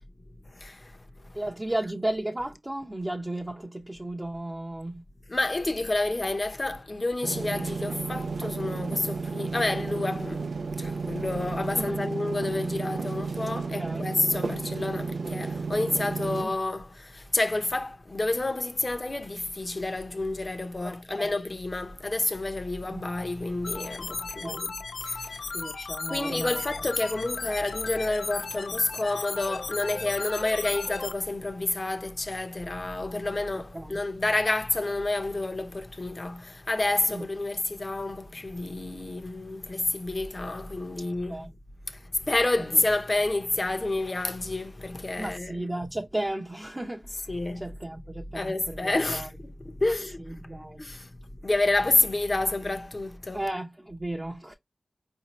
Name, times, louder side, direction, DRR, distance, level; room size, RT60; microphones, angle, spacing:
voice 1, 0.5-1.4 5.3-25.7 26.1-41.5 41.9-45.7 47.3-47.7 48.3-50.5 50.8-53.4, left 2 dB, 40° left, 0.8 m, -29 dB
voice 2, 1.3-5.0 11.7-12.1 13.8-14.1 16.4-16.5 20.8-21.3 22.9-23.1 24.2-24.7 25.5-26.8 33.7-34.0 37.1-37.2 41.3-41.5 42.6-42.7 45.2-49.3 50.3-50.8 53.3-54.5, right 1 dB, 20° right, 0.7 m, -34 dB
sound 1, 7.2-16.5, right 4 dB, 85° right, 0.3 m, -32 dB
sound 2, 23.6-31.1, left 4 dB, 85° left, 0.5 m, -36 dB
4.9 x 2.7 x 3.0 m
wide cardioid pair, 85°, 0 cm